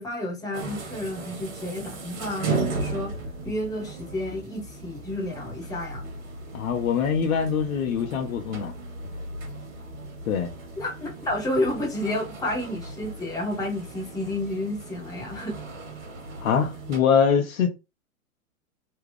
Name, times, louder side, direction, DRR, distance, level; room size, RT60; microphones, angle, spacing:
voice 1, 0.0-3.1 3.4-6.1 10.8-15.5, left 1 dB, 10° left, 1.2 m, -30 dB
sound 1, 0.5-17.0, right 3 dB, 55° right, 1.5 m, -36 dB
voice 2, 6.5-8.7 10.3-10.5 16.4-17.7, left 7 dB, 70° left, 1.0 m, -23 dB
3.2 x 2.4 x 3.3 m
hypercardioid pair, 120°, 43 cm